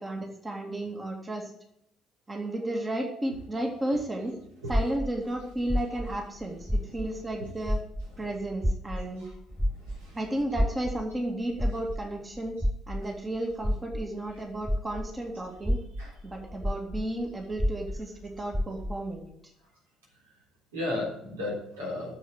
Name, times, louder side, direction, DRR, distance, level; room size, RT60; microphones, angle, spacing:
voice 1, 0.0-1.5 2.3-4.3 4.7-7.8 8.2-9.2 10.1-12.6 12.9-15.8 16.2-19.5, right 1 dB, 25° right, 2 dB, 2.3 m, -33 dB
sound 1, 4.7-7.4 7.6-15.2 15.6-19.1, equal, ahead, 0.7 m, -30 dB
voice 2, 9.0-9.3 9.7-10.2 16.0-16.1 20.7-22.1, left 2 dB, 75° right, -3 dB, 3.6 m, -35 dB
9.9 x 7.2 x 8.0 m, 0.74 s
figure-of-eight pair, 45°, 0 cm